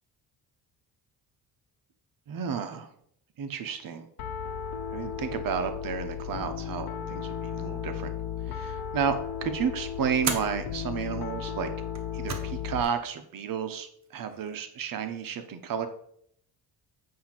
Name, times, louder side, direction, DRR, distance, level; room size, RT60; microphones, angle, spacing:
voice 1, 2.3-2.9 3.4-4.1 4.9-8.1 8.5-11.7 12.1-15.9, right 7 dB, 60° right, 8 dB, 1.0 m, -32 dB
Piano, 4.2-12.8, left 8 dB, 75° left, 1.0 m, -35 dB
sound 1, 8.7-9.1 10.2-10.6 11.8-12.6 12.8-12.9 14.0-14.6, right 5 dB, 45° right, 1.2 m, -35 dB
8.5 x 2.9 x 5.8 m, 0.67 s
cardioid pair, 90°, 38 cm